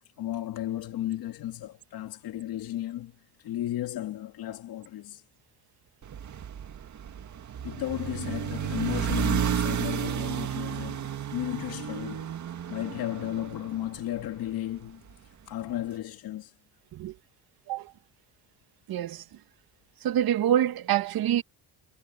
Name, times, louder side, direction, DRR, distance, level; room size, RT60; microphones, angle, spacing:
voice 1, 0.2-5.2 7.6-12.3 12.7-16.6, left 13 dB, 75° left, 2.5 m, -34 dB
sound 1, 6.0-14.4, right 9 dB, 50° right, 2.1 m, -32 dB
voice 2, 18.9-19.2 20.0-21.4, right 11 dB, 70° right, 1.9 m, -26 dB
cardioid pair, 85°, 37 cm